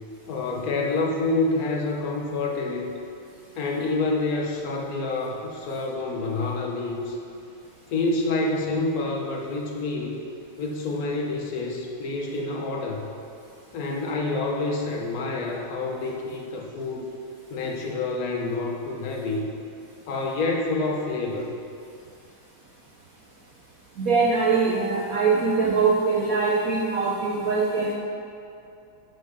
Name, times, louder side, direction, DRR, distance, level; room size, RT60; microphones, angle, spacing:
voice 1, 0.3-2.9 3.6-7.2 7.9-10.2 10.6-13.1 13.7-17.1 17.5-19.5 20.1-21.6, left 3 dB, 55° left, -1 dB, 1.1 m, -27 dB
voice 2, 24.0-27.9, right 4 dB, 70° right, -3 dB, 0.8 m, -22 dB
6.1 x 5.7 x 5.6 m, 2.5 s
omnidirectional pair, 2.3 m